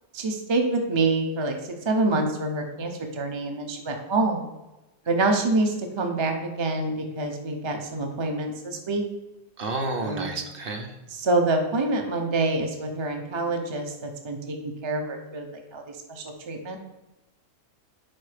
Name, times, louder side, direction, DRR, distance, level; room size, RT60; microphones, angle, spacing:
voice 1, 0.1-1.6 1.9-4.5 5.1-9.0 10.0-10.4 11.1-15.5 15.7-15.8 16.1-16.8, right 2 dB, 35° right, 3 dB, 0.4 m, -26 dB
voice 2, 9.6-10.9, right 2 dB, 55° right, 4 dB, 0.9 m, -30 dB
4.7 x 4.4 x 4.9 m, 1.0 s
omnidirectional pair, 1.3 m